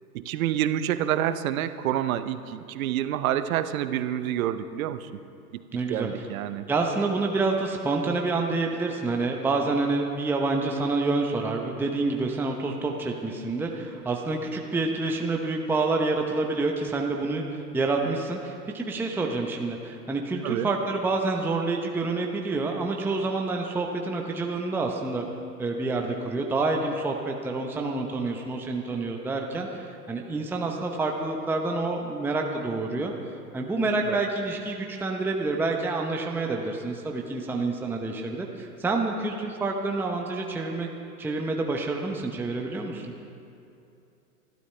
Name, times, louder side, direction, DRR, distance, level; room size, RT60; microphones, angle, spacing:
voice 1, 0.1-5.1 5.5-5.6 5.9-6.6 20.4-20.7 34.1-34.2, right 11 dB, 60° right, 12 dB, 0.9 m, -28 dB
voice 2, 5.7-6.1 6.7-25.3 25.6-33.1 33.5-40.9 41.2-43.1, right 3 dB, 5° right, 1 dB, 0.8 m, -28 dB
25.0 x 12.0 x 3.3 m, 2.6 s
hypercardioid pair, 110°, 48 cm